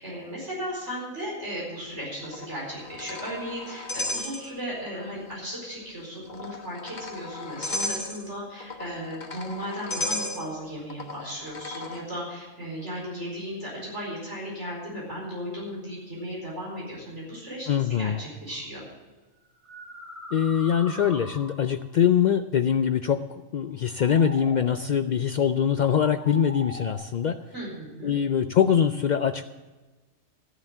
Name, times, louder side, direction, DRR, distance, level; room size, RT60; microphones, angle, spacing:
voice 1, 0.0-18.8 27.5-28.1, equal, 65° right, -4 dB, 5.0 m, -36 dB
sound 1, 2.2-4.9 5.2-5.3 6.1-12.0, left 2 dB, 40° left, 1.3 m, -35 dB
voice 2, 17.7-18.2 20.3-23.2 23.5-27.4 28.0-29.4, left 8 dB, 80° left, 10 dB, 0.4 m, -23 dB
sound 2, 18.5-18.6 19.4-21.8 23.7-24.8 25.8-26.9, equal, 15° right, 3.5 m, -42 dB
14.0 x 7.1 x 7.9 m, 1.2 s
omnidirectional pair, 1.3 m